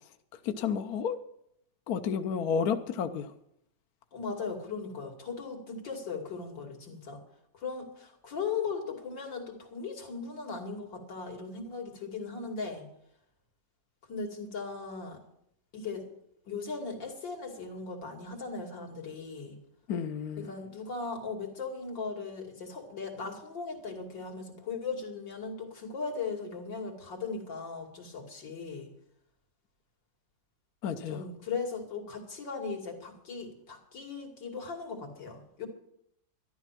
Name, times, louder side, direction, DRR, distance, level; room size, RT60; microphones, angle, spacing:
voice 1, 0.4-1.2 1.9-3.3 19.9-20.5 30.8-31.2, left 7 dB, 65° left, 1.1 m, -31 dB
voice 2, 4.1-7.2 7.5-12.9 14.1-15.2 15.7-16.1 16.4-19.6 20.4-28.9 31.1-35.7, left 4 dB, 80° left, 3.3 m, -38 dB
12.5 x 12.0 x 5.9 m
omnidirectional pair, 2.0 m